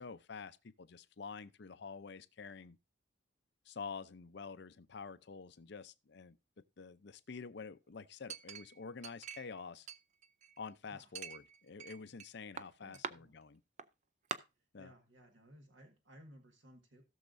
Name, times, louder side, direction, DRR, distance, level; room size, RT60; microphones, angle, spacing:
voice 1, 0.0-2.8 3.7-6.4 6.8-9.9 10.6-13.6 14.7-14.9, left 5 dB, 60° left, 0.6 m, -48 dB
Chink clink, 8.3-9.6 9.9-10.7 11.2-12.3 12.6-13.1 13.8-13.9 14.3-14.4, right 7 dB, 35° right, 0.4 m, -44 dB
voice 2, 12.8-13.4 14.8-17.0, equal, 65° right, 1.6 m, -59 dB
16.5 x 6.5 x 2.6 m
head